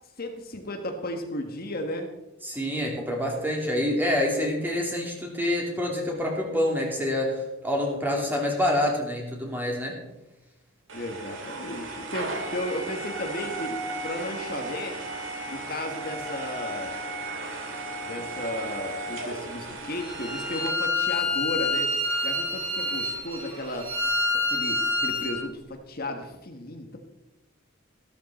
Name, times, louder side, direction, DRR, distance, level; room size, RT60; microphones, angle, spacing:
voice 1, 0.2-2.1 10.9-13.8 14.0-15.1 15.5-16.9 18.0-21.9 22.2-23.9 24.5-27.0, left 1 dB, 50° left, 4 dB, 1.5 m, -34 dB
voice 2, 2.4-10.0, left 1 dB, 10° right, 0 dB, 2.9 m, -27 dB
sound 1, 10.9-20.7, right 2 dB, 65° right, 2.4 m, -35 dB
Bowed string instrument, 20.0-25.4, left 2 dB, 25° right, 4.9 m, -27 dB
14.0 x 13.0 x 4.3 m, 0.95 s
head